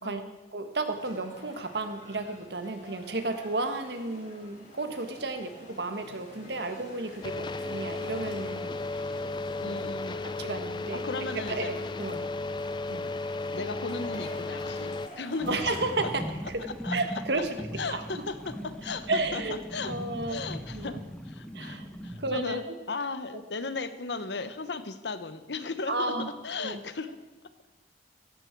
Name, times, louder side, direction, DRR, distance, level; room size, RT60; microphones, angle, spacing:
voice 1, 0.0-0.3 9.6-10.2 11.0-11.7 13.5-15.6 16.8-17.0 17.8-18.4 18.6-19.9 20.3-20.9 21.2-26.1 26.4-27.2, left 3 dB, 80° left, 11 dB, 1.0 m, -36 dB
voice 2, 0.5-9.1 9.5-9.9 10.4-11.0 11.3-12.2 12.9-13.1 15.5-16.2 16.5-18.0 19.1-19.6 19.8-20.4 20.7-21.0 21.5-21.9 22.2-22.7 23.3-23.4 25.9-26.3 26.6-26.8, right 2 dB, 75° right, 7 dB, 1.5 m, -33 dB
sound 1, 0.8-15.9, left 1 dB, 45° left, 3.9 m, -49 dB
sound 2, 7.2-15.1, left 3 dB, 25° left, 0.4 m, -34 dB
sound 3, 15.4-22.4, equal, 5° left, 1.1 m, -39 dB
16.5 x 14.5 x 4.6 m, 1.1 s
head